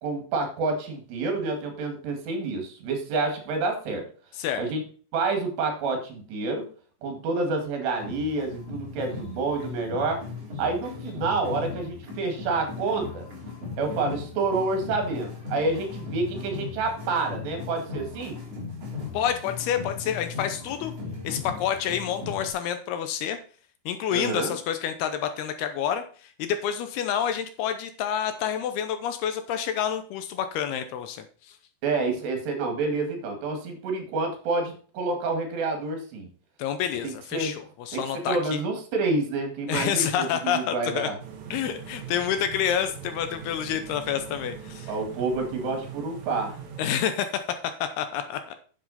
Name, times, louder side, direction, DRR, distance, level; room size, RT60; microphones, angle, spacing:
voice 1, 0.0-4.1 4.6-4.8 5.1-6.7 7.0-10.2 10.6-13.3 13.8-18.4 24.1-24.6 31.8-36.3 37.0-37.6 37.9-41.2 44.9-46.6, right 3 dB, 75° right, 4 dB, 4.2 m, -28 dB
sound 1, 8.0-22.5, left 5 dB, 40° right, 3.8 m, -38 dB
voice 2, 19.1-20.9 21.2-23.4 23.9-31.6 36.6-38.6 39.7-41.1 41.5-44.9 46.8-47.3 47.6-48.5, left 9 dB, 75° left, 8 dB, 2.6 m, -28 dB
sound 2, 41.2-46.9, right 8 dB, 55° right, 2.2 m, -41 dB
9.5 x 7.7 x 4.2 m, 0.41 s
omnidirectional pair, 5.0 m